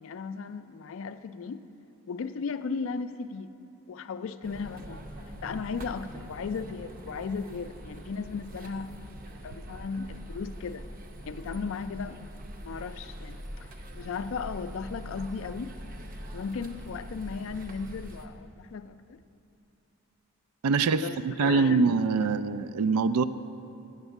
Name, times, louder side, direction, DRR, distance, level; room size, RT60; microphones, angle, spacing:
voice 1, 0.0-1.6 2.1-3.5 3.9-5.0 5.4-8.9 9.2-10.8 11.2-12.2 12.6-13.7 13.9-15.7 16.3-19.2 21.0-21.9, left 5 dB, 65° left, 11 dB, 0.3 m, -36 dB
sound 1, 4.4-18.3, equal, 40° right, 0.6 m, -43 dB
voice 2, 20.6-23.2, right 4 dB, 85° right, 14 dB, 0.3 m, -24 dB
7.2 x 6.7 x 8.0 m, 2.8 s
head